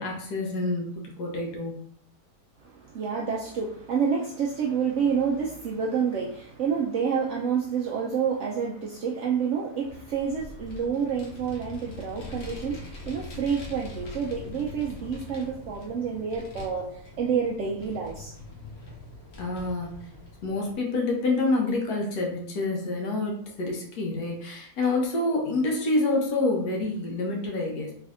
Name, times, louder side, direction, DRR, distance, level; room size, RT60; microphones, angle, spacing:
voice 1, 0.0-1.9 19.4-19.9 20.4-27.9, left 2 dB, 75° left, 0 dB, 1.4 m, -27 dB
voice 2, 2.7-16.9 17.2-18.3, right 6 dB, 80° right, -2 dB, 0.6 m, -28 dB
Vehicle, 9.8-20.7, left 2 dB, 60° left, 0.7 m, -43 dB
3.5 x 3.1 x 2.4 m, 0.63 s
omnidirectional pair, 1.8 m